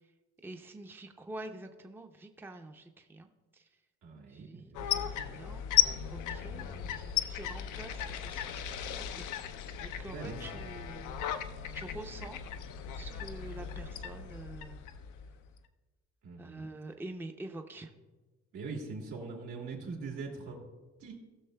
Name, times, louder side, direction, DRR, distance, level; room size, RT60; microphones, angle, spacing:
voice 1, 0.4-3.7 4.3-5.6 6.1-11.2 11.7-12.4 13.0-14.8 16.4-17.9, right 2 dB, 5° right, 5 dB, 0.5 m, -47 dB
voice 2, 4.0-5.0 10.1-10.6 16.2-16.7 18.5-20.6 21.0-21.1, right 4 dB, 85° right, -2 dB, 2.2 m, -42 dB
sound 1, 4.7-15.6, left 10 dB, 85° left, 0.6 m, -35 dB
17.0 x 6.3 x 2.2 m, 1.2 s
cardioid pair, 90°, 30 cm